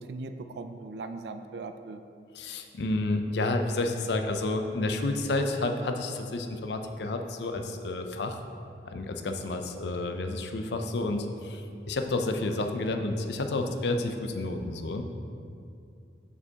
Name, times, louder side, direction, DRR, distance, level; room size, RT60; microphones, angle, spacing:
voice 1, 0.0-2.0, right 3 dB, 65° right, 8 dB, 0.3 m, -39 dB
voice 2, 2.4-8.4 8.9-15.0, left 2 dB, 70° left, 5 dB, 0.5 m, -30 dB
6.9 x 6.7 x 2.8 m, 2.5 s
head